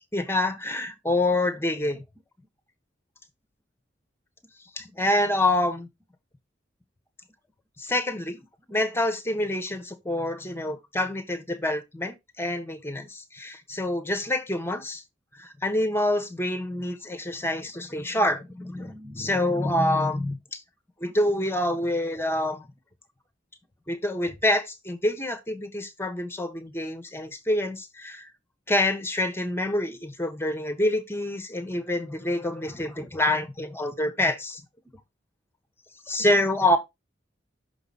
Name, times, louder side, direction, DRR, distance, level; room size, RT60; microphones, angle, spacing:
voice 1, 0.1-2.0 4.8-5.9 7.8-8.4 8.7-15.0 15.4-20.6 21.0-22.7 23.9-28.3 28.7-34.6 36.1-36.8, left 1 dB, 15° left, 1.1 m, -27 dB
6.0 x 5.0 x 4.1 m
head